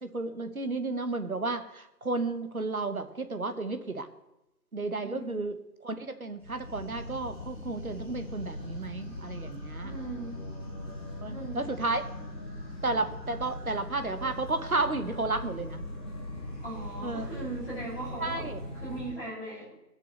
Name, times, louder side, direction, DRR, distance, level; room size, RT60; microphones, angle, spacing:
voice 1, 0.0-4.1 4.7-5.6 5.8-9.9 11.2-12.0 12.8-15.8 17.0-17.2 18.2-18.6, right 3 dB, 60° right, 9 dB, 1.0 m, -32 dB
voice 2, 5.0-5.4 9.8-10.4 11.3-11.8 16.6-18.5 18.7-19.8, right 2 dB, ahead, -32 dB, 3.7 m, -39 dB
sound 1, 6.4-19.1, left 1 dB, 15° left, 3.6 m, -40 dB
18.0 x 6.8 x 3.1 m, 0.92 s
figure-of-eight pair, 180°, 50 cm